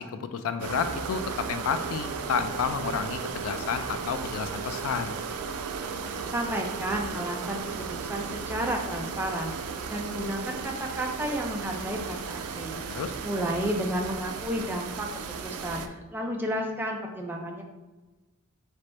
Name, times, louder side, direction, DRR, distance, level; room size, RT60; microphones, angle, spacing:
voice 1, 0.0-5.2 12.9-13.2, left 6 dB, 70° left, 10 dB, 0.3 m, -31 dB
sound 1, 0.6-15.9, right 5 dB, 85° right, 0.4 m, -35 dB
voice 2, 6.3-9.5 9.9-15.1 15.4-17.6, equal, 10° right, 1 dB, 0.5 m, -32 dB
3.4 x 3.3 x 4.0 m, 1.2 s
head